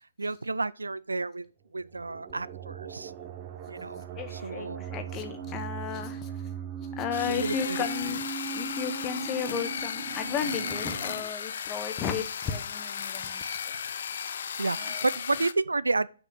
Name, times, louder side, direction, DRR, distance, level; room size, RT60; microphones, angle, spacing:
voice 1, 0.2-3.1 3.7-4.0 4.3-4.8 7.3-7.8 14.6-16.1, right 3 dB, 75° right, 0.3 m, -31 dB
sound 1, 1.8-11.2, right 6 dB, 30° right, 0.9 m, -39 dB
voice 2, 4.1-6.4 7.0-13.4 14.6-15.0, left 7 dB, 20° left, 0.9 m, -34 dB
sound 2, 7.1-15.5, left 7 dB, 50° left, 0.4 m, -35 dB
6.2 x 5.6 x 5.4 m
figure-of-eight pair, 135°, 0 cm